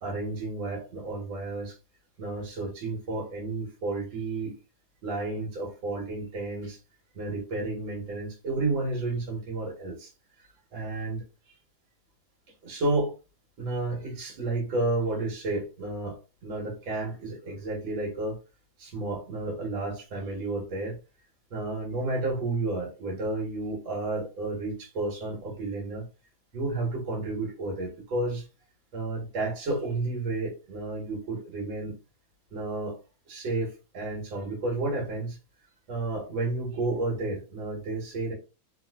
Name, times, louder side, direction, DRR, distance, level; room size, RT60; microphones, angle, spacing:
voice 1, 0.0-1.8 2.2-4.5 5.0-6.8 7.1-10.1 10.7-11.2 12.6-13.1 13.6-16.2 16.4-18.4 18.8-21.0 21.5-26.1 26.5-28.4 28.9-31.9 32.5-33.0 33.3-35.4 35.9-38.3, right 2 dB, 80° right, -2 dB, 2.0 m, -31 dB
4.0 x 2.5 x 2.3 m, 0.32 s
omnidirectional pair, 2.1 m